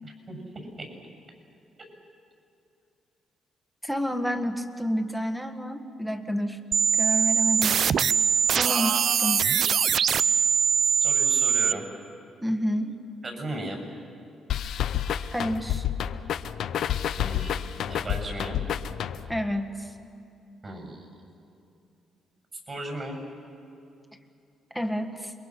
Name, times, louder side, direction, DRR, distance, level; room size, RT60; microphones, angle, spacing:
voice 1, 0.0-0.9 11.0-11.9 13.2-13.8 17.2-17.6 17.9-18.6 20.6-21.1 22.7-23.2, right 1 dB, 35° right, 3 dB, 7.3 m, -36 dB
voice 2, 3.8-6.6 7.0-7.8 8.5-9.4 12.4-13.0 15.3-15.9 19.3-19.9 24.7-25.3, equal, 5° right, 6 dB, 1.7 m, -29 dB
sound 1, 6.7-11.7, right 7 dB, 60° right, 0.5 m, -22 dB
sound 2, 14.5-19.5, left 10 dB, 75° left, 0.8 m, -29 dB
28.5 x 22.5 x 6.3 m, 2.6 s
cardioid pair, 90°, 0 cm